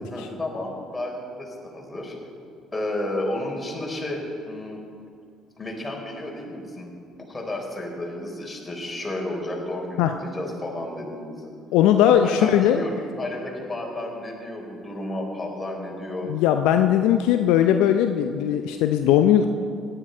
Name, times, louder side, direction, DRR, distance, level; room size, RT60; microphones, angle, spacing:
voice 1, 0.0-2.1 2.7-4.8 5.6-6.9 7.3-11.5 12.2-16.3, left 1 dB, 20° left, -1 dB, 4.0 m, -32 dB
voice 2, 11.7-12.9 16.3-19.6, left 10 dB, 70° left, 7 dB, 0.5 m, -19 dB
17.0 x 11.0 x 4.5 m, 2.3 s
hypercardioid pair, 55°, 0 cm